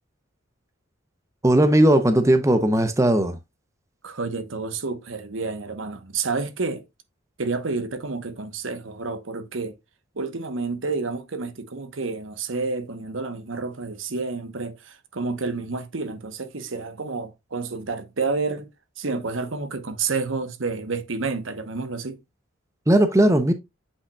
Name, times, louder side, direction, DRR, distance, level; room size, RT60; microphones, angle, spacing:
voice 1, 1.4-3.4 22.9-23.5, right 1 dB, 15° right, 0.7 m, -17 dB
voice 2, 4.0-6.8 7.4-9.8 10.2-18.7 19.0-22.2, right 4 dB, 70° right, 1.0 m, -29 dB
8.5 x 5.6 x 2.3 m
head